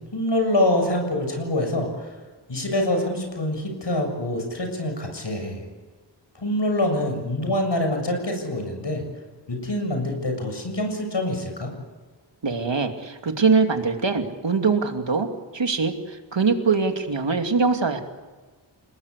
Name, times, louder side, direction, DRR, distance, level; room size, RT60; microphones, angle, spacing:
voice 1, 0.1-2.1 2.5-5.6 6.4-9.0 9.5-11.7, left 1 dB, 70° left, 4 dB, 7.2 m, -25 dB
voice 2, 12.4-15.3 15.5-18.0, right 4 dB, 75° right, 5 dB, 2.6 m, -22 dB
30.0 x 19.5 x 8.3 m, 1.3 s
wide cardioid pair, 85°, 44 cm